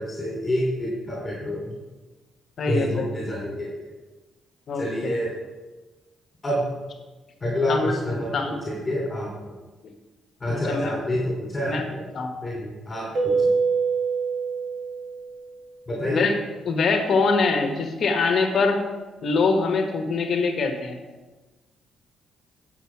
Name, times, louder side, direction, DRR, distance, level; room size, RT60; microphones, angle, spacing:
voice 1, 0.0-1.8 2.7-3.9 4.7-5.3 6.4-6.6 7.4-9.3 10.4-12.0 12.4-13.5 15.9-16.3, left 1 dB, 25° left, -4 dB, 3.2 m, -27 dB
voice 2, 2.6-3.1 4.7-5.1 7.7-7.9 8.3-8.5 10.7-10.9 11.7-11.8 12.1-12.3 16.1-16.3 16.6-18.8 19.2-21.0, left 4 dB, 60° left, 5 dB, 1.3 m, -23 dB
Keyboard (musical), 13.2-15.7, right 5 dB, 60° right, 2.4 m, -25 dB
10.0 x 6.8 x 4.7 m, 1.2 s
cardioid pair, 90°, 0 cm